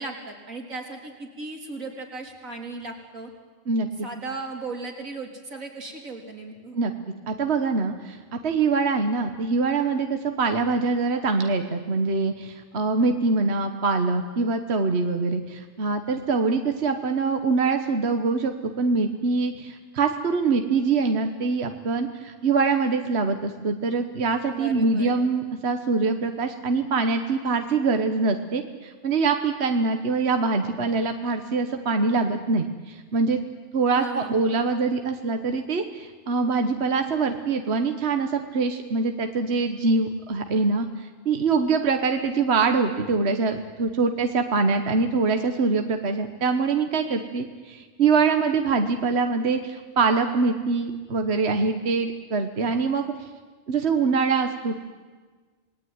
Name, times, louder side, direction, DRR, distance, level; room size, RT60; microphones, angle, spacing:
voice 1, 0.0-3.3 4.0-6.8 24.5-25.1 34.0-34.5, right 3 dB, 85° right, 1 dB, 4.2 m, -36 dB
voice 2, 3.7-4.1 6.7-6.9 7.3-33.4 33.7-53.1 53.7-54.8, right 4 dB, 55° right, 6 dB, 1.5 m, -24 dB
27.0 x 20.0 x 9.6 m, 1.4 s
omnidirectional pair, 1.4 m